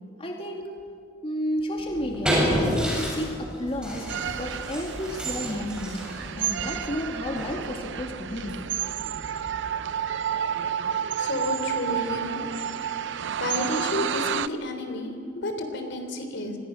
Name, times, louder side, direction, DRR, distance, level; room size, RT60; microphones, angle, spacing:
voice 1, 0.2-0.9 1.2-6.1 6.4-8.7, equal, 30° left, 1 dB, 2.3 m, -32 dB
sound 1, 1.8-9.9, equal, 5° right, 7.6 m, -31 dB
sound 2, 4.1-14.5, right 8 dB, 65° right, 0.6 m, -31 dB
voice 2, 11.1-12.5 12.8-13.0 13.4-16.6, left 1 dB, 65° left, 6 dB, 3.5 m, -31 dB
28.5 x 25.0 x 6.4 m, 2.3 s
head